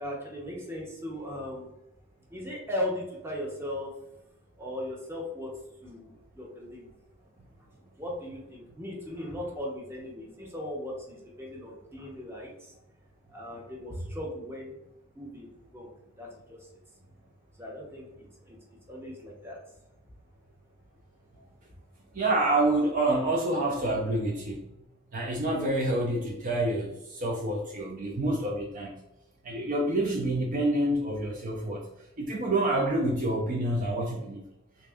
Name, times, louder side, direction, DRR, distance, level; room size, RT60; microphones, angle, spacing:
voice 1, 0.0-1.7 2.3-3.9 4.6-5.5 5.8-6.9 8.0-12.7 13.3-14.8 15.1-15.9 16.2-16.6 17.6-18.1 18.4-18.6 18.9-19.6 21.4-21.5, left 1 dB, 10° right, -2 dB, 0.8 m, -37 dB
voice 2, 22.1-24.7 25.1-28.9 29.4-31.9 32.2-34.4, right 1 dB, 40° right, 0 dB, 0.5 m, -27 dB
3.4 x 2.5 x 3.4 m, 0.89 s
head